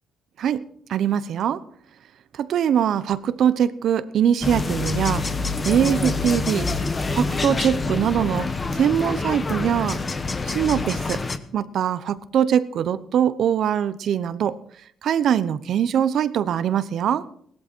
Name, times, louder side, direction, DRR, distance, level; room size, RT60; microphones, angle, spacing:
voice 1, 0.9-1.6 2.3-5.2 5.6-6.7 7.1-10.0 10.4-11.2 11.5-14.6 15.0-17.2, right 9 dB, 70° right, 15 dB, 0.9 m, -22 dB
sound 1, 4.4-11.4, left 3 dB, 30° left, 1.3 m, -26 dB
17.5 x 13.0 x 4.5 m, 0.64 s
cardioid pair, 90°, 0 cm